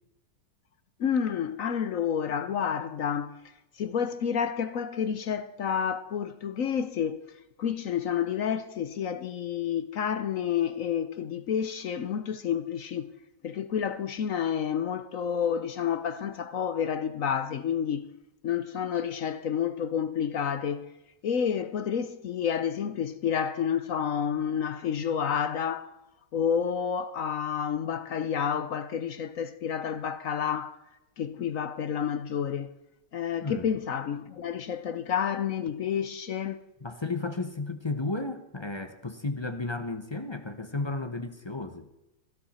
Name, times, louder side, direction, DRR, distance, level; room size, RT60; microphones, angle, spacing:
voice 1, 1.0-3.4 3.8-7.3 7.6-13.1 13.4-18.1 18.4-20.9 21.2-25.9 26.3-30.8 31.2-32.7 33.1-36.6, left 8 dB, 60° left, 0.9 m, -29 dB
voice 2, 33.4-33.7 36.8-41.9, left 3 dB, 35° left, 0.4 m, -33 dB
16.5 x 15.5 x 4.3 m
omnidirectional pair, 2.1 m